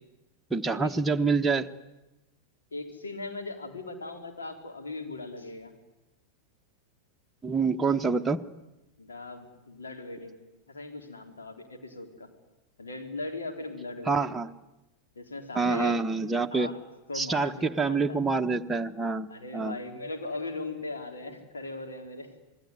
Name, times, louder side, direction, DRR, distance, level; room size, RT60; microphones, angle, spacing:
voice 1, 0.5-1.7 7.4-8.4 14.1-14.5 15.5-16.7 17.1-19.3 19.5-19.7, right 4 dB, 10° right, 5 dB, 1.1 m, -26 dB
voice 2, 2.7-5.7 7.9-8.0 9.0-10.4 10.7-12.3 12.8-14.3 15.2-16.0 16.5-16.8 17.1-18.2 19.3-22.3, left 2 dB, 70° left, 4 dB, 4.0 m, -39 dB
27.5 x 21.0 x 9.8 m, 0.98 s
figure-of-eight pair, 90°, 0 cm